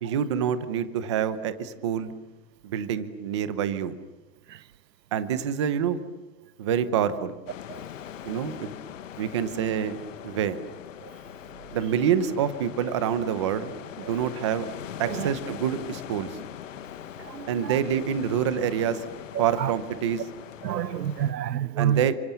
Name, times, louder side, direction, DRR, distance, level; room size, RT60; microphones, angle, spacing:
voice 1, 0.0-2.1 2.6-3.9 5.1-6.0 6.6-7.3 8.2-8.7 9.2-10.0 10.2-10.6 11.7-14.7 15.0-16.3 17.5-19.0 19.4-20.2 21.8-22.2, right 8 dB, 20° right, 0.9 m, -27 dB
sound 1, 7.5-21.3, left 10 dB, 50° left, 1.6 m, -41 dB
voice 2, 17.2-17.8 19.3-19.7 20.6-22.1, right 10 dB, 80° right, 1.0 m, -29 dB
30.0 x 26.0 x 7.1 m
hypercardioid pair, 175°, 49 cm